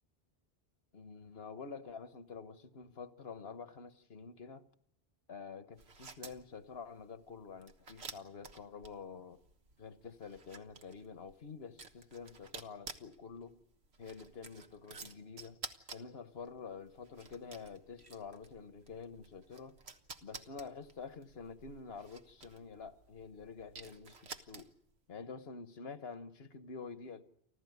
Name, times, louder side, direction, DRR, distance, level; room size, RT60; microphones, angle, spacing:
voice 1, 0.9-4.6 5.3-9.4 9.8-13.6 14.0-15.6 15.9-19.8 20.2-24.7 25.1-27.2, left 5 dB, 75° left, 1.4 m, -48 dB
sound 1, 5.7-25.0, right 4 dB, 90° right, 1.6 m, -53 dB
30.0 x 13.0 x 9.4 m
omnidirectional pair, 1.0 m